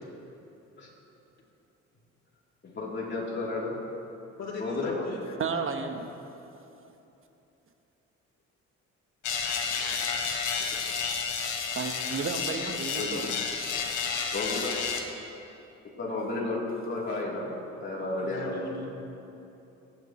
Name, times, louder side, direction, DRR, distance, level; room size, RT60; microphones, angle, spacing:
voice 1, 2.6-3.7 4.6-5.1 10.7-10.8 13.0-13.2 14.3-14.8 16.0-17.5 17.8-18.5, left 2 dB, 35° left, -4 dB, 3.4 m, -32 dB
voice 2, 4.4-5.4 18.2-19.1, left 3 dB, 60° left, -3 dB, 2.9 m, -39 dB
voice 3, 5.4-6.1 11.7-13.3, right 5 dB, 45° right, 5 dB, 1.1 m, -32 dB
sound 1, 9.2-15.0, left 6 dB, 80° left, 1.5 m, -31 dB
25.0 x 9.1 x 3.1 m, 2.9 s
cardioid pair, 90°, 30 cm